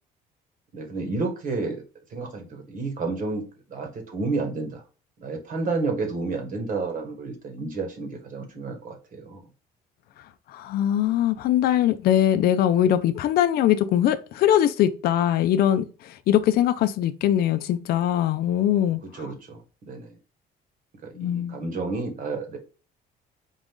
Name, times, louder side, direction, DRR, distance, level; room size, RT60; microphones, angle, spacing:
voice 1, 0.7-1.8 2.1-4.8 5.2-9.4 19.0-20.2 21.0-22.6, right 3 dB, 55° right, 1.4 m, -31 dB
voice 2, 10.5-19.0 21.2-21.6, left 11 dB, 65° left, 0.4 m, -22 dB
4.0 x 2.5 x 3.5 m
cardioid pair, 110°, 17 cm